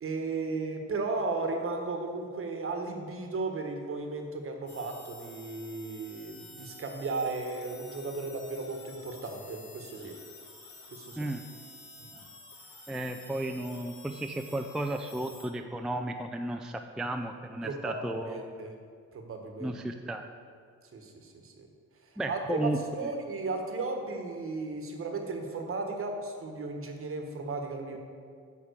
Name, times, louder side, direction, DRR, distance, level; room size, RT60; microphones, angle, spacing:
voice 1, 0.0-10.2 10.9-11.3 12.0-12.2 17.6-18.7 19.1-19.7 20.9-21.7 22.3-22.7 22.9-28.0, right 3 dB, 45° right, 4 dB, 1.2 m, -35 dB
sound 1, 4.7-15.5, left 2 dB, 75° left, 2.1 m, -50 dB
voice 2, 12.9-18.5 19.6-20.3 22.2-23.1, right 1 dB, ahead, 5 dB, 0.4 m, -34 dB
9.4 x 3.6 x 6.6 m, 2.1 s
cardioid pair, 90°, 30 cm